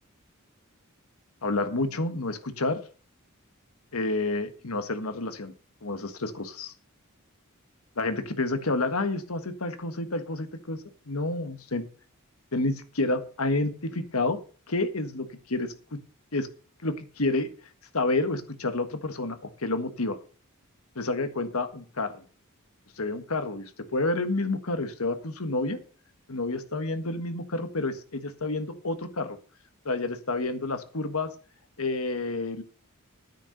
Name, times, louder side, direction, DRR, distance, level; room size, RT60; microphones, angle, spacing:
voice 1, 1.4-2.8 3.9-5.5 5.8-6.7 8.0-11.9 12.5-14.4 14.7-16.0 16.3-16.5 16.8-17.5 17.9-20.2 20.9-22.2 23.0-25.8 26.3-29.4 29.8-31.3 31.8-32.6, left 2 dB, 80° left, 8 dB, 1.6 m, -29 dB
9.9 x 9.5 x 5.3 m, 0.38 s
head